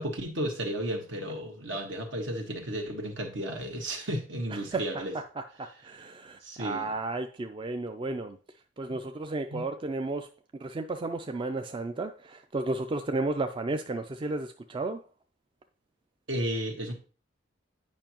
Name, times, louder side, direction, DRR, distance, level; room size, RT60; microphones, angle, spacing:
voice 1, 0.0-5.1 6.4-6.9 8.9-9.0 9.5-9.6 16.3-16.9, right 1 dB, 75° right, 1.4 m, -33 dB
voice 2, 5.1-8.4 8.8-10.3 10.6-15.0, right 2 dB, 25° right, 0.3 m, -33 dB
9.0 x 5.2 x 2.9 m
head